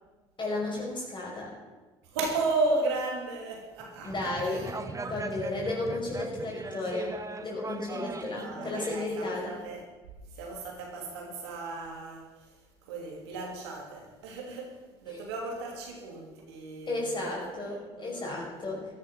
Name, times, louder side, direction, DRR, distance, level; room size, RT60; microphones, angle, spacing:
voice 1, 0.4-1.5 4.0-4.6 5.1-7.2 7.4-9.5 15.1-15.2 16.9-18.9, left 2 dB, 35° left, -4 dB, 5.7 m, -33 dB
voice 2, 2.0-4.7 8.4-9.8 10.3-17.5 18.0-18.7, right 3 dB, 85° right, 0 dB, 3.0 m, -35 dB
sound 1, 4.0-8.9, right 3 dB, 25° right, 1.3 m, -39 dB
15.5 x 10.5 x 5.9 m, 1.3 s
hypercardioid pair, 60°, 13 cm